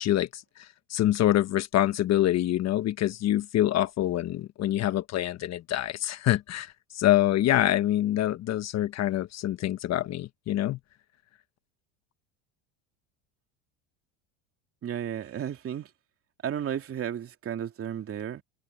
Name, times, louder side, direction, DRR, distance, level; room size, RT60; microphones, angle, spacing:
voice 1, 0.0-10.8, left 13 dB, 45° left, 1.3 m, -26 dB
voice 2, 14.8-15.9 16.4-18.4, right 9 dB, 35° right, 2.8 m, -33 dB
supercardioid pair, 100°, 38 cm